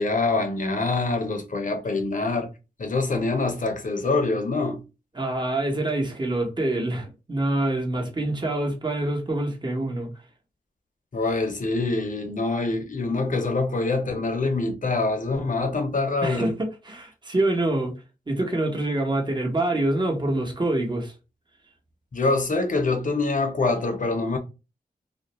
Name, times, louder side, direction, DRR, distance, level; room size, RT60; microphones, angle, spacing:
voice 1, 0.0-2.5 2.8-4.8 11.1-16.5 22.1-24.4, left 3 dB, 55° left, 0.7 m, -25 dB
voice 2, 5.1-10.1 16.2-17.9 18.3-21.1, right 2 dB, 30° right, 1.0 m, -26 dB
2.4 x 2.1 x 2.9 m
cardioid pair, 60°, 16 cm